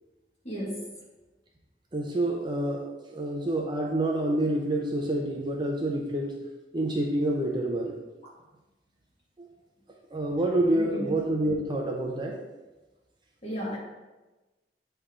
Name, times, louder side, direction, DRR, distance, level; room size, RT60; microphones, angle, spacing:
voice 1, 0.4-0.9 8.2-8.4 10.7-11.1 13.4-13.8, equal, 35° left, -5 dB, 1.9 m, -34 dB
voice 2, 1.9-6.3 6.7-8.0 9.4-9.5 10.1-12.4, right 1 dB, 25° right, 0 dB, 0.6 m, -28 dB
8.3 x 3.4 x 3.7 m, 1.1 s
head